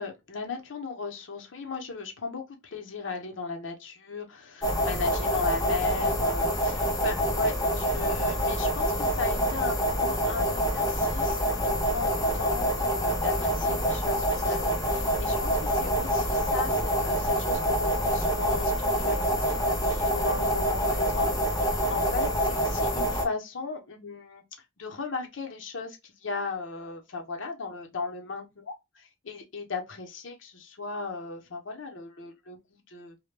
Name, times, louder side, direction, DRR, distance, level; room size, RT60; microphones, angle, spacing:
voice 1, 0.0-21.3 21.6-24.4 24.8-32.6 32.9-33.2, left 4 dB, 75° left, 0.7 m, -36 dB
sound 1, 4.6-23.3, equal, 20° left, 0.5 m, -26 dB
2.1 x 2.1 x 3.1 m
head